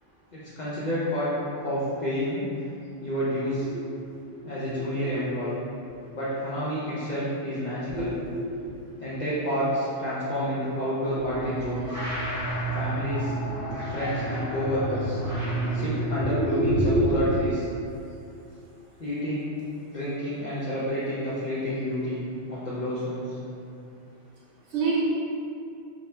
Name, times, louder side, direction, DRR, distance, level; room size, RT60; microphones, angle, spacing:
voice 1, 0.3-1.3 1.6-2.4 3.0-3.7 4.4-5.6 6.1-8.1 9.0-12.0 12.7-13.3 13.9-15.2 15.7-17.6 19.0-19.5 19.9-22.2 22.5-23.4, equal, 65° left, -9 dB, 0.4 m, -29 dB
voice 2, 7.9-8.7 16.5-17.3 24.7-25.0, right 1 dB, 80° right, -7 dB, 1.0 m, -26 dB
sound 1, 11.2-16.7, right 1 dB, 50° right, 0.8 m, -30 dB
2.6 x 2.1 x 3.2 m, 2.6 s
omnidirectional pair, 1.3 m